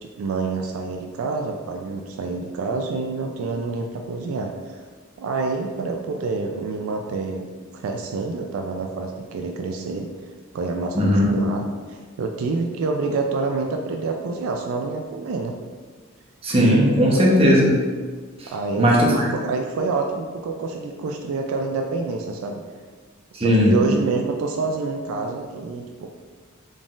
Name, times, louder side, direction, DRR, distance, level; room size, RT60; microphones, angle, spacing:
voice 1, 0.0-4.8 5.2-7.5 7.7-10.1 10.5-15.5 17.1-17.2 18.5-22.6 23.4-26.1, right 4 dB, 70° right, 2 dB, 0.3 m, -27 dB
voice 2, 10.9-11.3 16.4-17.7 18.4-18.5 18.8-19.3 23.3-23.8, equal, 25° right, -4 dB, 0.7 m, -17 dB
3.9 x 3.7 x 2.4 m, 1.5 s
head